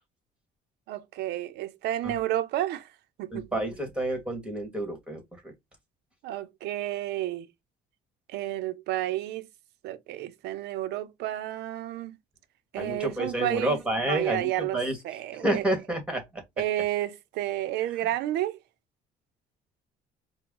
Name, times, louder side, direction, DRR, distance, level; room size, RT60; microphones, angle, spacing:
voice 1, 0.9-2.9 3.2-3.5 6.2-7.5 8.3-9.5 9.8-12.2 12.7-13.8 14.1-14.8 15.0-15.6 16.6-18.6, right 13 dB, 80° right, 0.7 m, -31 dB
voice 2, 3.3-5.5 12.8-15.0 15.3-16.4, right 1 dB, 5° right, 1.8 m, -29 dB
4.6 x 2.2 x 3.8 m
cardioid pair, 110°, 17 cm